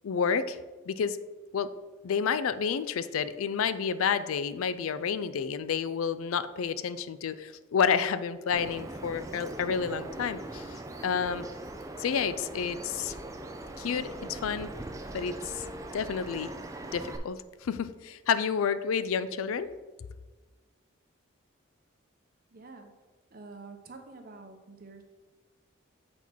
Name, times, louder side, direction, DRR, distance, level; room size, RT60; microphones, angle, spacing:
voice 1, 0.0-0.6 0.9-1.2 1.5-1.7 2.0-11.5 12.0-13.1 13.8-14.7 15.1-15.7 15.9-16.5 16.9-19.7, left 6 dB, 85° left, 13 dB, 0.4 m, -30 dB
Bird vocalization bird call bird song, 8.5-17.2, right 1 dB, 15° right, 0.4 m, -41 dB
voice 2, 22.5-22.9 23.3-25.0, right 3 dB, 45° right, 5 dB, 0.8 m, -47 dB
8.1 x 4.3 x 4.4 m, 1.3 s
head